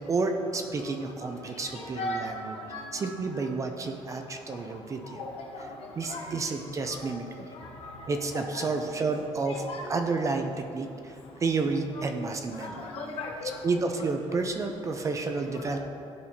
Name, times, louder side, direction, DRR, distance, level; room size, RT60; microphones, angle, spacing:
voice 1, 0.1-2.6 2.9-5.2 6.0-7.5 8.1-9.6 9.9-12.9 13.6-15.8, right 3 dB, 30° right, 5 dB, 0.4 m, -30 dB
voice 2, 1.7-2.8 5.2-5.6 6.1-6.3 7.8-8.9 9.5-9.9 11.9-12.0 12.6-13.6 15.6-15.7, left 2 dB, 65° left, 0 dB, 1.1 m, -37 dB
11.0 x 4.1 x 2.7 m, 2.6 s
cardioid pair, 130°, 11 cm